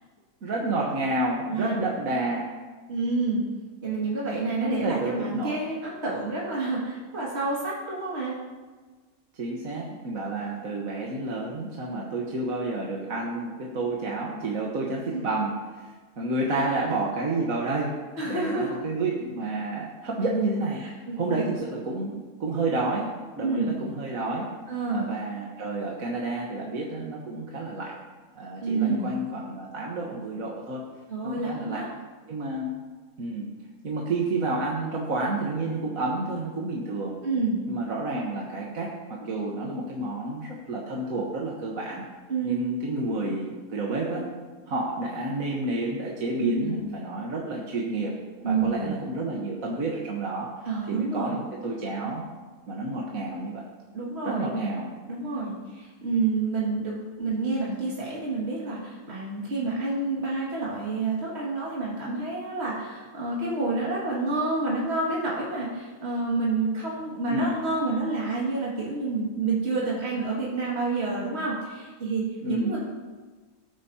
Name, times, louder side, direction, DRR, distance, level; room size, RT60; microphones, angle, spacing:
voice 1, 0.4-2.5 4.6-5.6 9.4-17.9 18.2-20.8 21.2-24.5 24.9-27.9 28.3-30.8 31.2-31.8 32.3-32.8 33.2-33.5 33.8-37.2 37.7-42.1 42.4-44.3 44.7-48.1 48.4-50.5 50.9-52.3 52.7-53.6 54.2-54.9 67.3-67.5 72.4-72.8, right 2 dB, 65° right, -3 dB, 1.6 m, -30 dB
voice 2, 1.5-1.8 2.9-3.4 3.8-8.4 15.0-15.2 16.5-16.8 18.2-18.7 20.8-21.4 23.4-23.7 24.7-25.1 28.6-29.1 31.1-31.9 37.2-37.6 42.3-42.5 46.4-46.8 48.4-49.0 50.7-51.4 53.9-54.5 55.1-72.8, right 3 dB, 45° right, -6 dB, 2.5 m, -28 dB
18.5 x 9.3 x 2.8 m, 1.3 s
omnidirectional pair, 1.5 m